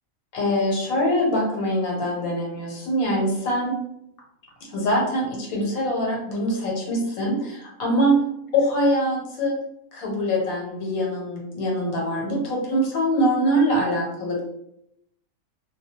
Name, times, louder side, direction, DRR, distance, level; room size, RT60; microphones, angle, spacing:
voice 1, 0.3-3.7 4.7-8.1 8.5-9.5 9.9-14.4, equal, 85° left, -2 dB, 1.2 m, -23 dB
2.2 x 2.2 x 2.8 m, 0.78 s
omnidirectional pair, 1.5 m